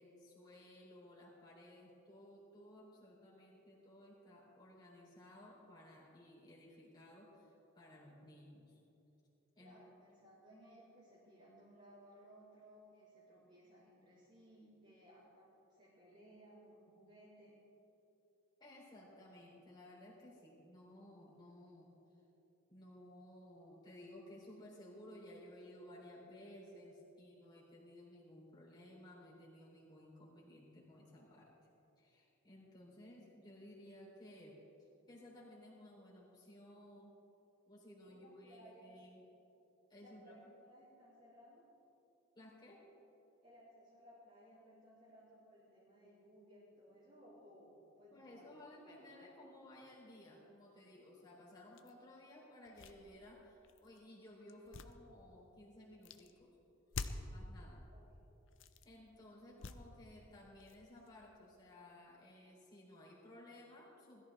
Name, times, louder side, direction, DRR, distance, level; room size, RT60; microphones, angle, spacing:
voice 1, 0.0-8.8 9.6-9.8 18.6-21.9 22.7-31.5 32.0-37.1 37.7-39.2 39.9-40.4 42.4-42.8 48.1-56.5 57.3-57.8 58.8-64.2, left 1 dB, 20° left, -5 dB, 3.7 m, -57 dB
voice 2, 9.6-17.6 38.1-39.0 40.0-41.6 43.4-48.5 57.9-58.0, equal, 35° right, -10 dB, 3.5 m, -61 dB
sound 1, 51.8-51.9 52.6-54.0 54.5-55.6 56.0-56.3 56.9-57.4 58.5-58.9 59.5-60.1 60.5-61.7, left 4 dB, 65° left, 0.7 m, -48 dB
20.5 x 14.0 x 3.6 m, 2.9 s
head